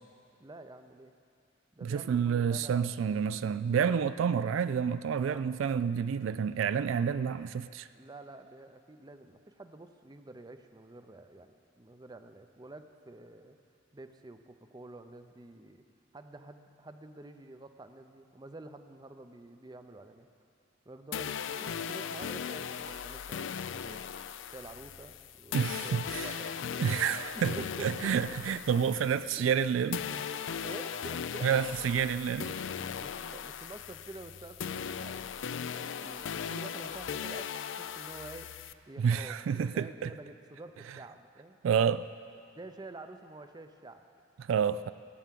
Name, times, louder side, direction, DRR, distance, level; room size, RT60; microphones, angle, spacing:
voice 1, 0.4-1.1 1.7-3.4 5.1-5.5 7.9-13.6 13.9-15.9 16.1-20.3 20.9-24.1 24.5-26.7 27.3-28.1 29.4-29.5 30.6-31.5 33.0-35.3 35.7-38.5 38.9-41.6 42.6-44.0, right 2 dB, 20° right, 8 dB, 0.6 m, -49 dB
voice 2, 1.8-7.9 25.5-26.3 26.8-30.0 31.4-32.5 39.0-40.1 41.6-42.1 44.4-44.9, right 7 dB, 80° right, 15 dB, 0.3 m, -29 dB
sound 1, 21.1-29.6 29.9-38.7, left 7 dB, 70° left, 0.4 m, -38 dB
15.0 x 9.1 x 7.5 m, 2.5 s
head